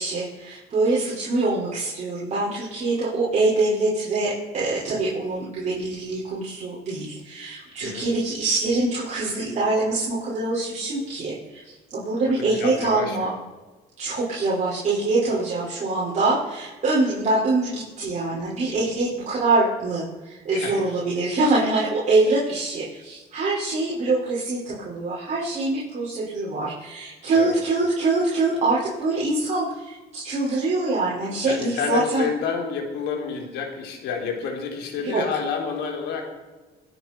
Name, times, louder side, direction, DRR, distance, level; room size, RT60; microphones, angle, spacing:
voice 1, 0.0-13.3 14.0-32.3 35.0-35.2, right 2 dB, 45° right, -8 dB, 5.5 m, -24 dB
voice 2, 12.2-13.3 20.5-20.8 27.4-27.6 31.5-36.3, left 6 dB, 80° left, 2 dB, 3.6 m, -29 dB
26.0 x 9.6 x 4.6 m, 1.2 s
cardioid pair, 110°, 17 cm